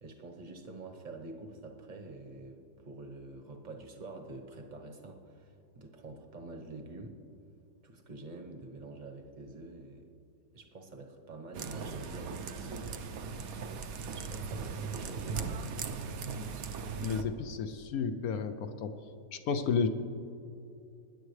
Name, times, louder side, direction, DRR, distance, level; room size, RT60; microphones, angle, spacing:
voice 1, 0.0-7.2 7.8-10.1 10.5-12.9 14.1-15.7, right 2 dB, 30° right, 3 dB, 0.9 m, -46 dB
sound 1, 11.5-17.2, right 5 dB, 60° right, 1.0 m, -38 dB
voice 2, 17.0-18.9 19.3-19.9, left 6 dB, 70° left, 9 dB, 0.9 m, -32 dB
21.0 x 10.0 x 3.2 m, 2.6 s
omnidirectional pair, 1.9 m